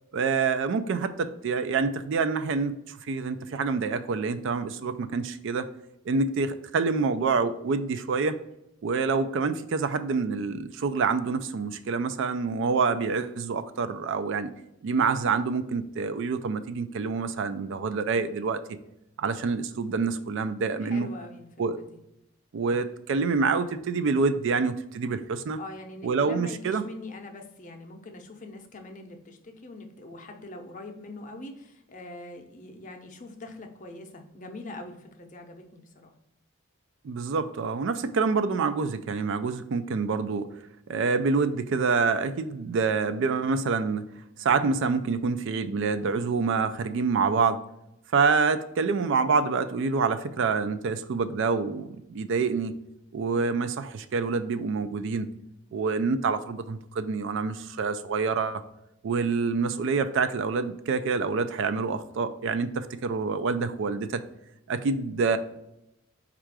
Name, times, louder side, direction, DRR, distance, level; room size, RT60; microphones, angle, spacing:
voice 1, 0.1-5.7 6.1-8.4 8.8-14.5 14.8-18.6 19.2-21.1 21.6-21.8 22.5-25.6 26.0-26.8 37.0-40.5 40.9-44.0 44.4-47.6 48.1-52.7 53.1-55.3 55.7-58.6 59.0-64.2 64.7-65.4, right 4 dB, 60° right, 11 dB, 0.4 m, -27 dB
voice 2, 20.8-21.5 21.8-22.0 25.6-36.1, left 2 dB, 40° left, 4 dB, 0.6 m, -43 dB
4.4 x 2.5 x 4.6 m, 0.85 s
head